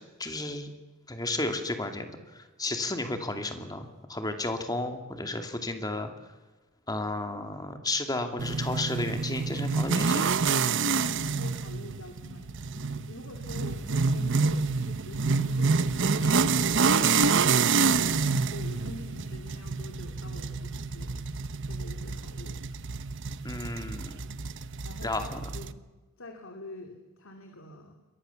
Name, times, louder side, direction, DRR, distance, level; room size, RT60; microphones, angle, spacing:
voice 1, 0.2-0.7 1.1-6.1 6.9-10.3 16.2-16.4 23.4-24.2 25.0-25.5, left 2 dB, 20° left, 6 dB, 2.4 m, -33 dB
sound 1, 8.4-25.7, right 4 dB, 60° right, 0.9 m, -27 dB
voice 2, 11.2-12.7 13.1-18.2 18.5-21.1 21.7-22.6 24.8-25.8 26.2-27.9, left 1 dB, 65° left, 4 dB, 2.7 m, -45 dB
28.0 x 23.0 x 7.1 m, 1.2 s
head